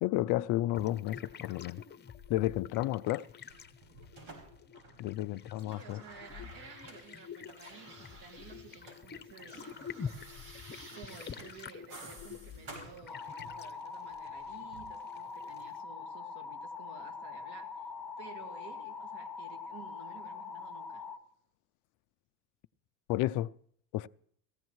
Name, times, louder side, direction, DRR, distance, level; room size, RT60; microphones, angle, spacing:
voice 1, 0.0-1.8 2.3-3.3 5.0-6.0 23.1-23.5 23.9-24.1, left 15 dB, 40° left, 0.4 m, -31 dB
sound 1, 0.7-15.8, left 7 dB, 20° left, 0.8 m, -48 dB
sound 2, 3.5-5.2 5.5-9.0 9.3-13.7 14.7-14.9, right 2 dB, 80° right, 5.5 m, -52 dB
voice 2, 5.3-9.8 10.9-17.9 18.2-21.1, right 6 dB, 50° right, 2.1 m, -53 dB
sound 3, 13.1-21.2, left 5 dB, 5° left, 1.4 m, -43 dB
18.0 x 15.0 x 3.1 m
supercardioid pair, 100°, 49 cm